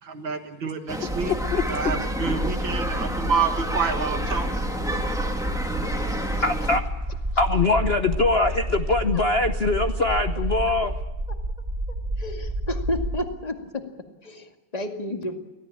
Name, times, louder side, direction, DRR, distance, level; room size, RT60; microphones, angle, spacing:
voice 1, 0.0-1.3 1.7-4.6, right 5 dB, 65° right, 6 dB, 2.6 m, -28 dB
sound 1, 0.9-6.8, equal, ahead, 2.1 m, -30 dB
voice 2, 1.0-1.6 6.4-6.8 7.1-11.0, left 3 dB, 40° left, 7 dB, 0.9 m, -23 dB
sound 2, 1.1-13.2, right 1 dB, 15° right, 2.8 m, -30 dB
voice 3, 12.2-13.9 14.2-15.4, left 1 dB, 20° left, 5 dB, 2.2 m, -31 dB
25.0 x 17.5 x 8.8 m, 1.0 s
omnidirectional pair, 2.3 m